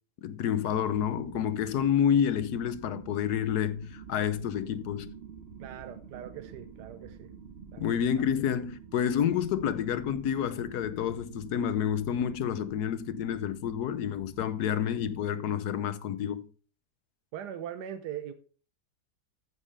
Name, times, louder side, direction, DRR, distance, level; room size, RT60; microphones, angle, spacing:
voice 1, 0.2-5.1 7.8-16.4, left 9 dB, 75° left, 1.3 m, -29 dB
sound 1, 0.7-15.1, right 6 dB, 45° right, 1.3 m, -48 dB
voice 2, 5.6-7.3 7.7-7.9 17.3-18.3, right 10 dB, 90° right, 1.3 m, -41 dB
14.0 x 6.3 x 3.3 m
omnidirectional pair, 1.7 m